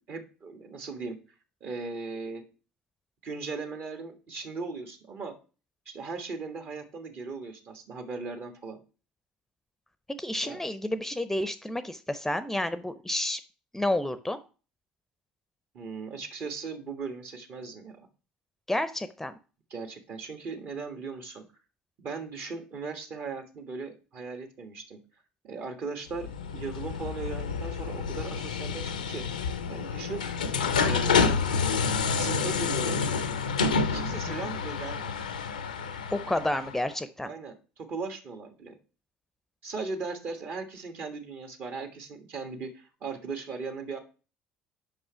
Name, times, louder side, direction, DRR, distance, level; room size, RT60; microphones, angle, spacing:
voice 1, 0.1-1.2 1.6-2.4 3.2-5.4 5.8-8.8 10.4-10.6 15.7-18.0 19.7-21.4 22.0-25.0 25.4-29.2 29.7-30.3 30.8-31.8 32.1-33.0 33.9-35.2 37.2-38.7 39.6-44.0, right 4 dB, 55° right, 6 dB, 1.6 m, -38 dB
voice 2, 10.2-13.4 13.7-14.4 18.7-19.4 34.1-34.5 36.1-37.3, left 1 dB, 10° left, 12 dB, 0.6 m, -30 dB
sound 1, 26.1-36.8, left 5 dB, 85° left, 0.5 m, -29 dB
5.5 x 5.3 x 5.6 m, 0.36 s
hypercardioid pair, 60°, 4 cm